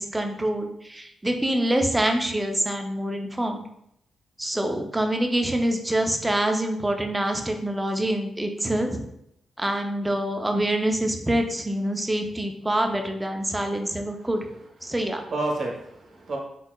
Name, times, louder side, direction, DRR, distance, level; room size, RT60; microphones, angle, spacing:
voice 1, 0.0-3.6 4.4-9.0 9.6-14.5 14.8-15.2, right 1 dB, 10° right, 4 dB, 0.4 m, -26 dB
voice 2, 13.5-13.9 14.2-14.3 14.8-15.0 15.3-16.4, right 2 dB, 50° right, 0 dB, 1.0 m, -31 dB
4.4 x 3.9 x 2.2 m, 0.74 s
wide cardioid pair, 140°, 0 cm